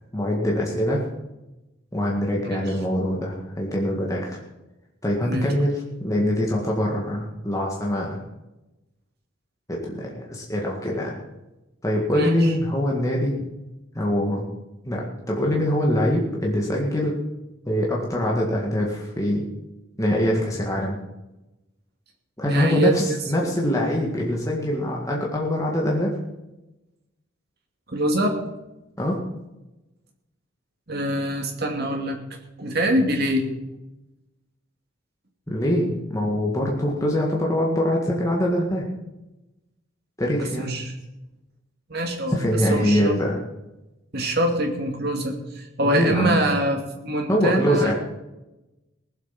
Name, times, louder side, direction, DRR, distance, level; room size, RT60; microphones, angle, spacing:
voice 1, 0.1-1.0 1.9-4.4 5.0-8.2 9.7-11.2 11.8-13.4 13.9-14.4 14.9-15.0 15.3-17.2 17.7-19.5 20.0-21.0 22.4-26.1 29.0-29.2 35.5-38.9 40.2-40.7 42.3-43.4 45.8-46.4 47.3-47.9, left 1 dB, 15° left, -2 dB, 1.9 m, -23 dB
voice 2, 5.2-5.5 12.1-12.5 22.4-23.0 23.4-23.5 27.9-28.3 30.9-32.2 32.6-33.5 40.3-40.9 41.9-42.4 42.7-43.2 44.1-47.9, right 1 dB, 50° right, 3 dB, 2.4 m, -24 dB
19.5 x 7.8 x 5.9 m, 0.99 s
head